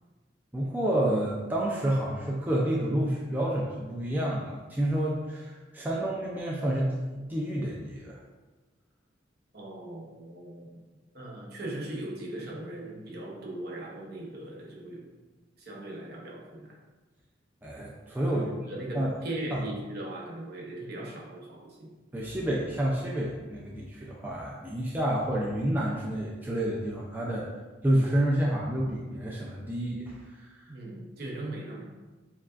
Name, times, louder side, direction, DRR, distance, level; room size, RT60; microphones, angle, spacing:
voice 1, 0.5-8.2 17.6-18.4 18.9-19.1 19.5-19.6 22.1-27.5 27.8-30.2, right 1 dB, 10° right, -4 dB, 0.4 m, -29 dB
voice 2, 9.5-10.8 11.1-15.1 15.6-16.8 18.3-21.9 30.7-31.9, right 1 dB, 55° right, -2 dB, 0.8 m, -39 dB
7.0 x 2.4 x 2.4 m, 1.2 s
head